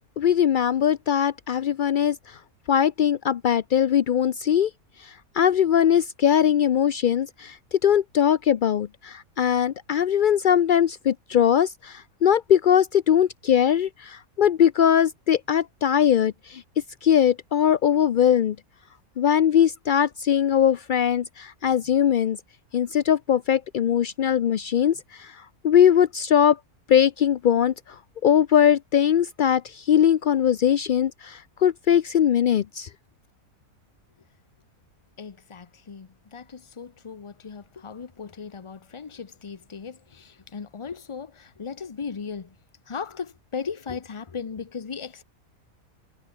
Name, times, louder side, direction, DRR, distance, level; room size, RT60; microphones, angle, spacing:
voice 1, 0.2-2.4 2.7-4.7 5.0-16.6 17.0-18.6 19.2-22.4 22.7-26.6 26.9-32.9, left 9 dB, 70° left, 0.4 m, -21 dB
voice 2, 35.2-42.6 42.9-45.2, left 6 dB, 30° left, 0.6 m, -37 dB
omnidirectional pair, 1.5 m